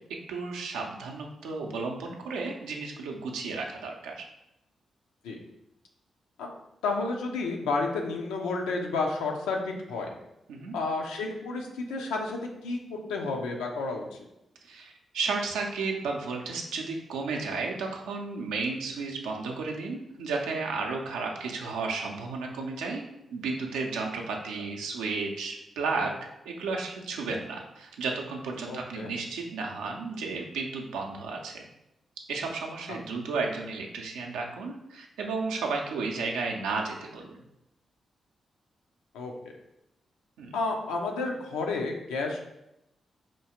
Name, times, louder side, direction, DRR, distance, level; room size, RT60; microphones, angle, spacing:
voice 1, 0.3-4.2 10.5-10.8 14.6-23.0 23.3-26.1 26.5-31.6 32.3-37.3 40.4-40.6, right 4 dB, 85° right, 1 dB, 0.4 m, -33 dB
voice 2, 6.8-10.1 10.7-14.2 28.7-29.1 39.1-39.3 40.5-42.4, left 3 dB, 90° left, 1 dB, 0.4 m, -31 dB
4.3 x 2.4 x 2.8 m, 0.86 s
hypercardioid pair, 40°, 0 cm